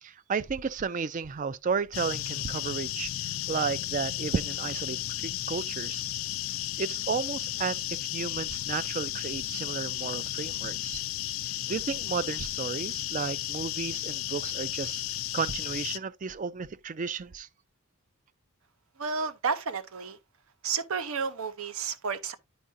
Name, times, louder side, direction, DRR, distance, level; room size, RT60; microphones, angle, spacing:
voice 1, 0.0-3.1 3.5-6.1 6.8-11.0 11.4-17.5, right 5 dB, 35° right, 0.3 m, -33 dB
sound 1, 1.9-16.0, left 14 dB, 70° left, 0.4 m, -34 dB
voice 2, 19.0-20.2 20.6-22.4, right 5 dB, 75° right, 0.7 m, -31 dB
9.9 x 4.6 x 2.5 m
head